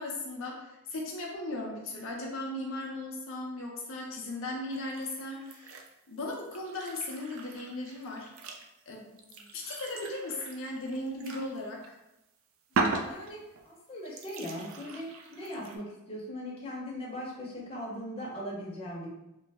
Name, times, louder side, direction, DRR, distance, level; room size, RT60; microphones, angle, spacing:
voice 1, 0.0-8.3 8.9-9.1 9.5-11.8, left 2 dB, 70° left, -1 dB, 0.5 m, -37 dB
sound 1, 4.7-5.9 6.3-11.6 11.8-11.9 12.7-13.6 14.0-15.8, right 3 dB, 75° right, 0.4 m, -38 dB
voice 2, 9.1-9.5 12.7-13.4 13.6-19.1, equal, 30° left, -5 dB, 0.7 m, -40 dB
3.1 x 2.0 x 3.4 m, 0.90 s
head